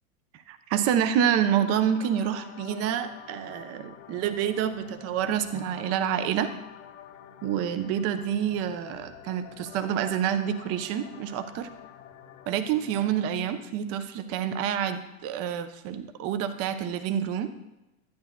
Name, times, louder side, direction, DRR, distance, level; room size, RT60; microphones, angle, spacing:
voice 1, 0.3-6.5 7.4-11.7 12.5-17.5, right 9 dB, 35° right, 10 dB, 0.7 m, -28 dB
sound 1, 1.4-13.4, left 9 dB, 55° left, 1.0 m, -48 dB
11.0 x 9.8 x 2.3 m, 0.96 s
hypercardioid pair, 100°, 43 cm